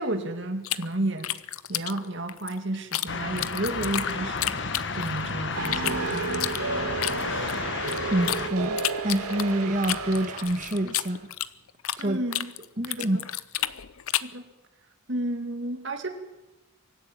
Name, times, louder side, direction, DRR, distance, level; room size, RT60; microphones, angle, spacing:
voice 1, 0.0-1.3 1.7-6.5 12.0-12.5 12.9-13.3 14.2-14.5 15.1-16.1, right 1 dB, 55° right, 6 dB, 2.5 m, -32 dB
sound 1, 0.6-3.1 3.4-5.3 5.6-8.4 8.8-12.1 12.3-14.4, left 13 dB, 75° left, 0.7 m, -31 dB
sound 2, 3.1-8.5, left 4 dB, 55° left, 1.5 m, -32 dB
sound 3, 5.5-10.9, right 4 dB, 85° right, 3.1 m, -32 dB
voice 2, 8.1-11.2 12.0-12.2 12.8-13.2, right 1 dB, 35° right, 8 dB, 1.5 m, -27 dB
24.5 x 14.0 x 8.9 m, 0.99 s
head